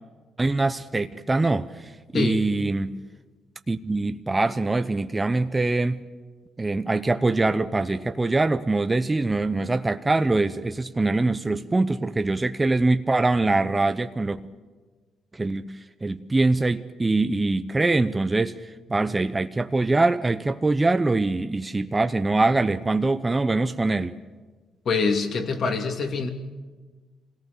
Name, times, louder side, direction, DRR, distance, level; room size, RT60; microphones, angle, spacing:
voice 1, 0.4-2.9 3.7-6.0 6.6-14.4 15.3-15.7 16.0-24.2, right 2 dB, 20° right, 9 dB, 0.7 m, -23 dB
voice 2, 24.8-26.3, left 4 dB, 55° left, 5 dB, 2.5 m, -24 dB
25.5 x 18.0 x 6.7 m, 1.3 s
cardioid pair, 90°, 0 cm